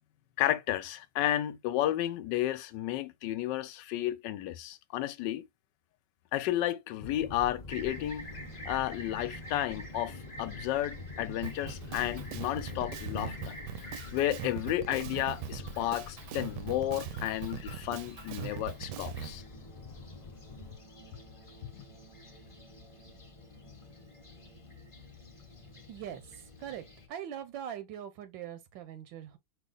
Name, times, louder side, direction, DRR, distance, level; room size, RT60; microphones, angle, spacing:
voice 1, 0.4-5.5 6.3-8.3 8.6-13.5 13.8-19.4 21.7-21.8, left 13 dB, 75° left, 1.2 m, -32 dB
sound 1, 7.0-20.8, left 3 dB, 40° left, 0.6 m, -46 dB
Fixed-wing aircraft airplane, 7.7-27.1, equal, 20° left, 1.1 m, -49 dB
Drum kit, 11.4-19.4, right 9 dB, 75° right, 1.1 m, -41 dB
voice 2, 25.9-29.4, right 10 dB, 90° right, 1.5 m, -42 dB
5.4 x 2.4 x 3.8 m
omnidirectional pair, 2.0 m